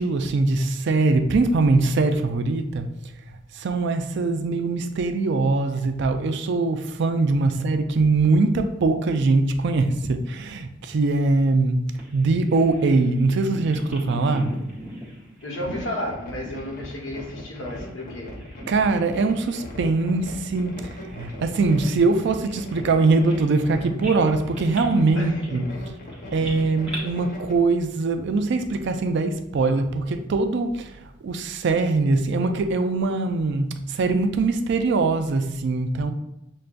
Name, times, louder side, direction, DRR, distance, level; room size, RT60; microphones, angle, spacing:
voice 1, 0.0-2.9 3.6-11.9 12.1-14.5 18.7-25.7 26.3-30.9 31.2-36.1, right 3 dB, 60° right, 0.4 m, -22 dB
Bird vocalization bird call bird song, 12.0-17.9 18.2-19.1 19.4-19.6 20.2-23.7 24.0-27.0, right 1 dB, 5° right, 1.0 m, -42 dB
voice 2, 15.4-18.4 25.1-25.8, left 1 dB, 75° left, 1.1 m, -33 dB
sound 1, 15.5-27.5, left 1 dB, 45° left, 0.8 m, -39 dB
6.4 x 2.2 x 2.4 m
head